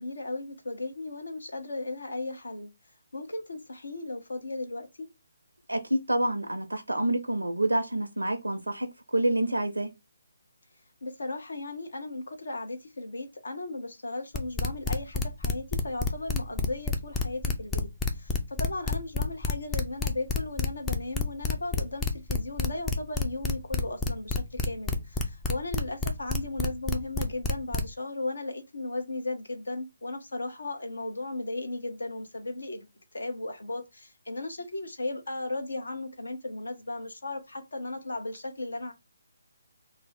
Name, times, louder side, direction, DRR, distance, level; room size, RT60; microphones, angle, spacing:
voice 1, 0.0-2.7 3.1-5.1 11.0-32.9 33.1-38.9, left 2 dB, 70° left, 0.8 m, -36 dB
voice 2, 5.7-9.9, right 1 dB, 85° right, 0.5 m, -28 dB
sound 1, 14.3-27.9, left 3 dB, 15° left, 0.4 m, -28 dB
2.6 x 2.0 x 4.0 m
figure-of-eight pair, 145°, 0 cm